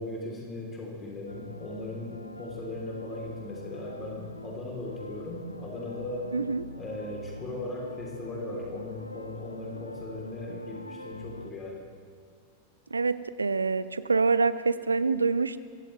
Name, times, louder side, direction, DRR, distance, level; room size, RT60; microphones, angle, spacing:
voice 1, 0.0-6.3 6.8-11.8, left 2 dB, 20° left, -1 dB, 3.4 m, -38 dB
sound 1, 1.3-11.5, left 2 dB, 85° left, 0.4 m, -43 dB
voice 2, 6.3-6.6 12.9-15.6, right 4 dB, 80° right, 15 dB, 0.5 m, -26 dB
22.5 x 17.0 x 3.3 m, 2.2 s
figure-of-eight pair, 90°, 0 cm